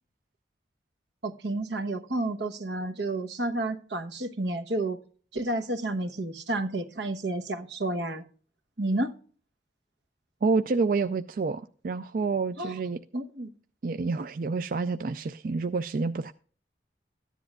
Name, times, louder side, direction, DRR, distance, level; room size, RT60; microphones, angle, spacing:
voice 1, 1.2-5.0 5.3-8.3 8.8-9.1 12.6-12.8 13.1-13.5, right 2 dB, 80° right, 1.1 m, -30 dB
voice 2, 10.4-13.0 13.8-16.3, right 4 dB, 50° right, 0.3 m, -28 dB
14.5 x 10.0 x 2.4 m
head